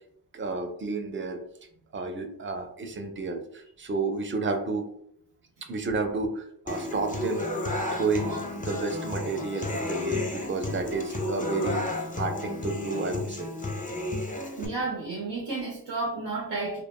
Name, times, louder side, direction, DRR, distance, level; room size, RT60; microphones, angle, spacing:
voice 1, 0.3-1.4 1.9-4.9 5.6-7.6 7.9-11.8 12.1-13.5, right 3 dB, 30° right, 5 dB, 0.5 m, -31 dB
Human voice / Acoustic guitar, 6.7-14.7, left 1 dB, 20° left, 0.5 m, -32 dB
voice 2, 14.6-16.8, right 3 dB, 80° right, -3 dB, 0.7 m, -31 dB
2.4 x 2.1 x 3.0 m, 0.69 s
cardioid pair, 50°, 42 cm